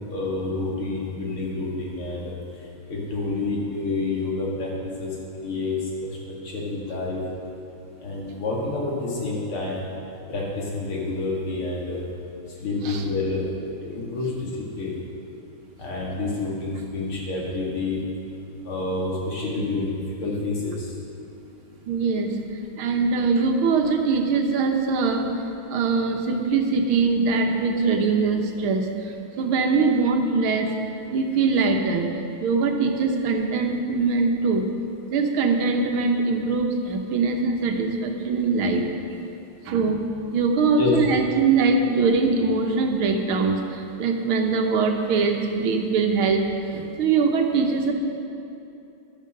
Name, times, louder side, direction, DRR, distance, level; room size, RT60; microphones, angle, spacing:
voice 1, 0.1-2.2 2.9-5.1 5.4-5.8 6.0-7.2 8.0-9.9 10.3-12.0 12.6-13.4 13.8-14.5 14.8-14.9 15.8-18.0 18.6-20.9 40.8-40.9, left 3 dB, 80° left, -3 dB, 3.1 m, -28 dB
voice 2, 21.9-22.4 22.8-25.3 25.7-30.7 31.1-32.1 32.4-34.7 35.1-38.9 39.7-40.0 40.3-47.9, right 4 dB, 75° right, 4 dB, 1.8 m, -22 dB
12.0 x 9.3 x 6.5 m, 2.8 s
omnidirectional pair, 2.3 m